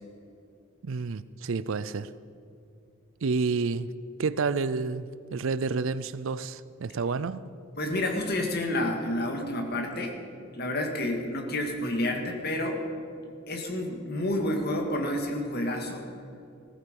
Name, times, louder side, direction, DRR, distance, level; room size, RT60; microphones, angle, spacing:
voice 1, 0.8-2.1 3.2-3.9 4.2-7.4, right 4 dB, 60° right, 16 dB, 0.5 m, -29 dB
voice 2, 7.8-10.2 10.5-12.8 13.5-16.1, left 1 dB, 45° left, 3 dB, 2.0 m, -29 dB
15.5 x 14.5 x 5.4 m, 2.5 s
head